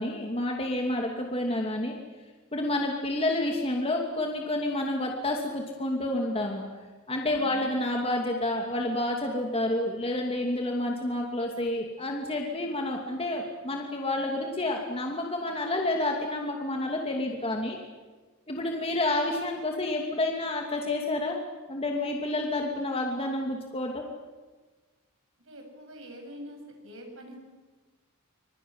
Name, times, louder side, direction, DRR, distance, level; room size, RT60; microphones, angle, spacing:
voice 1, 0.0-2.0 2.5-6.6 7.1-17.8 18.5-21.4 21.7-24.1, left 1 dB, 25° left, 1 dB, 2.6 m, -29 dB
voice 2, 25.4-27.4, equal, 65° right, 2 dB, 7.6 m, -45 dB
25.5 x 23.0 x 9.6 m, 1.3 s
head